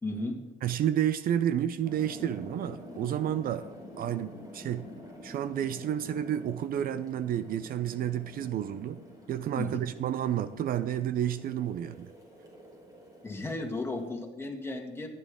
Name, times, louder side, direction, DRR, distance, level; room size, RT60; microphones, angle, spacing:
voice 1, 0.0-0.4 9.6-9.8 13.2-15.1, left 2 dB, 15° left, 1 dB, 2.2 m, -34 dB
voice 2, 0.6-3.7 4.0-4.8 5.2-9.0 9.3-12.1, right 10 dB, 60° right, 14 dB, 0.6 m, -30 dB
sound 1, 1.8-14.1, left 1 dB, 20° right, 4.3 m, -48 dB
14.5 x 11.0 x 3.7 m, 1.0 s
cardioid pair, 110°, 17 cm